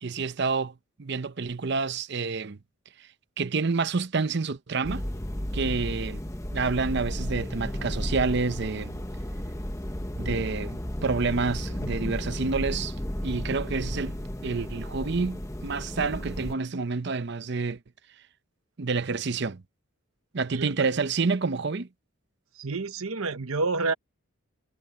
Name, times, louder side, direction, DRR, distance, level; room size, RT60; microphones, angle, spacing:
voice 1, 0.0-2.6 3.0-3.1 3.4-5.0 5.5-6.2 6.5-9.0 10.1-12.9 13.2-14.2 14.4-17.8 18.8-19.6 20.3-21.9, right 4 dB, 50° right, 0.7 m, -28 dB
sound 1, 4.8-16.5, equal, 15° left, 1.1 m, -33 dB
voice 2, 20.5-20.9 22.6-23.9, right 3 dB, 80° right, 1.0 m, -29 dB
head